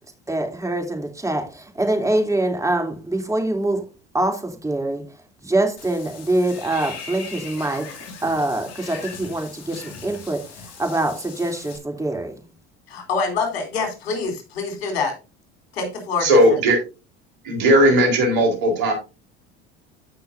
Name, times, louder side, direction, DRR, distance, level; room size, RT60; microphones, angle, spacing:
voice 1, 0.3-3.9 4.1-5.0 5.4-12.5, right 2 dB, 10° right, 3 dB, 3.0 m, -24 dB
Water / Bathtub (filling or washing), 5.8-11.8, left 5 dB, 55° left, 2.7 m, -39 dB
voice 2, 12.9-15.1 15.7-16.4, left 4 dB, 75° left, 3 dB, 3.6 m, -25 dB
voice 3, 16.2-16.8 17.4-18.9, right 1 dB, 70° right, 3 dB, 4.2 m, -16 dB
14.5 x 5.8 x 2.6 m, 0.29 s
hypercardioid pair, 75°, 31 cm